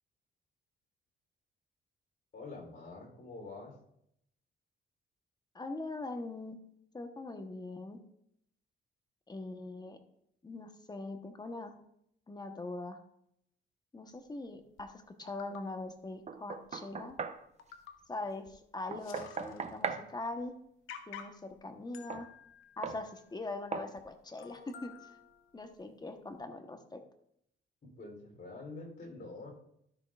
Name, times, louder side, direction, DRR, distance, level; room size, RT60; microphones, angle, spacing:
voice 1, 2.3-3.8 27.8-29.5, left 3 dB, 50° left, 0 dB, 3.4 m, -46 dB
voice 2, 5.5-6.6 6.9-8.0 9.3-10.0 10.4-11.8 12.3-13.0 13.9-17.2 18.1-20.6 21.1-22.3 22.8-24.9 25.5-27.0, left 2 dB, 20° left, 6 dB, 1.1 m, -42 dB
sound 1, 14.8-14.9 15.3-15.6 16.6-16.7 17.1-17.2 17.6-18.1 18.5-18.6 18.8-19.9 20.3-20.4 20.9-21.5 21.9-23.5 24.0-24.1 24.4-25.7 26.3-26.4, left 8 dB, 85° left, 0.9 m, -51 dB
Knock, 16.3-17.4 18.9-20.1 22.1-22.3 22.8-23.0 23.7-23.9, right 6 dB, 35° right, 0.7 m, -38 dB
12.5 x 6.4 x 2.4 m, 0.73 s
cardioid pair, 90°, 20 cm